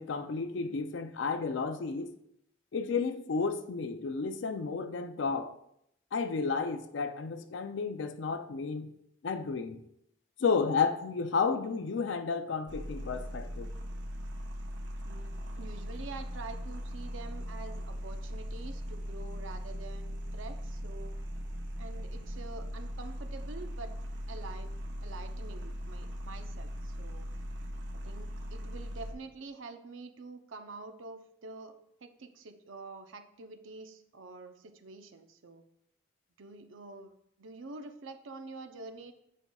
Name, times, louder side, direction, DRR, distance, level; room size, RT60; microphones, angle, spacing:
voice 1, 0.0-2.1 2.7-5.5 6.1-8.9 9.2-9.8 10.4-13.7, left 5 dB, 70° left, 0.4 m, -32 dB
sound 1, 12.7-29.1, equal, 70° right, 1.0 m, -39 dB
voice 2, 15.0-21.1 21.8-23.9 24.3-24.7 25.0-27.3 28.0-31.7 32.0-35.6 36.4-39.1, right 3 dB, 85° right, 0.6 m, -47 dB
8.3 x 5.3 x 2.3 m
head